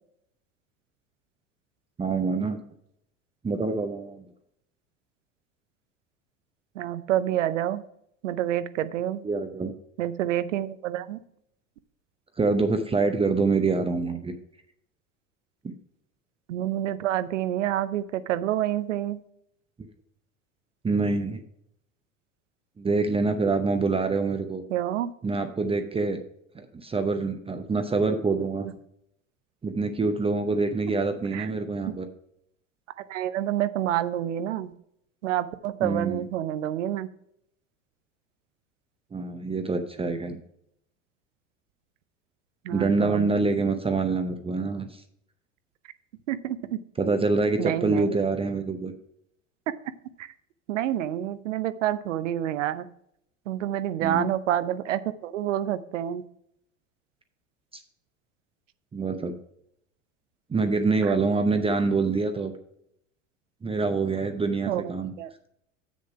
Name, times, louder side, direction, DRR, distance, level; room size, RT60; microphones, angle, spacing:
voice 1, 2.0-2.6 3.4-4.2 9.2-9.7 12.4-14.3 20.8-21.4 22.8-24.6 25.2-26.2 26.5-28.7 29.6-32.1 35.8-36.2 39.1-40.4 42.7-44.9 47.0-48.9 54.0-54.2 57.7-57.8 58.9-59.3 60.5-62.5 63.6-65.1, right 3 dB, 15° right, 7 dB, 0.7 m, -25 dB
voice 2, 6.8-7.8 8.2-9.2 10.0-11.2 16.5-19.2 24.7-25.1 31.3-31.5 33.0-34.7 35.2-37.1 42.6-43.3 46.3-46.8 47.6-48.2 50.2-50.3 50.7-52.9 53.5-56.2 64.7-64.9 65.2-65.3, right 12 dB, 70° right, 14 dB, 0.7 m, -28 dB
7.5 x 6.6 x 4.8 m, 0.72 s
figure-of-eight pair, 75°, 38 cm